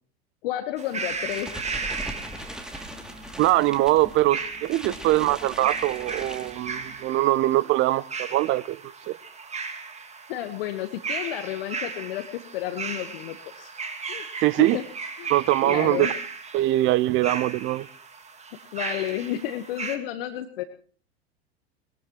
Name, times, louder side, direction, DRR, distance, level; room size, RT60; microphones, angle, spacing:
voice 1, 0.4-1.8 10.3-13.7 14.1-14.3 14.7-14.8 15.2-15.3 15.6-16.1 18.7-20.6, left 13 dB, 60° left, 1.2 m, -31 dB
sound 1, 0.8-20.0, right 4 dB, 20° right, 2.2 m, -36 dB
sound 2, 1.1-7.0, equal, ahead, 2.6 m, -40 dB
voice 2, 3.4-8.8 9.1-9.2 14.4-14.8 15.3-16.1 16.5-17.9, right 16 dB, 40° right, 0.7 m, -22 dB
21.5 x 21.0 x 3.0 m
figure-of-eight pair, 80°, 32 cm